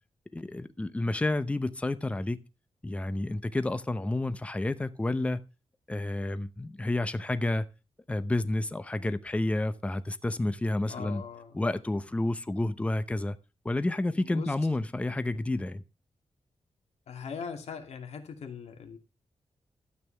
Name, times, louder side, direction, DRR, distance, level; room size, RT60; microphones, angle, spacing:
voice 1, 0.3-2.4 2.8-5.4 5.9-7.7 8.1-11.2 11.5-13.4 13.6-15.8, left 2 dB, 10° left, 0.7 m, -30 dB
voice 2, 10.9-11.6 14.1-14.6 17.1-19.0, left 6 dB, 85° left, 2.3 m, -40 dB
12.5 x 8.4 x 3.3 m
wide cardioid pair, 165°, 11 cm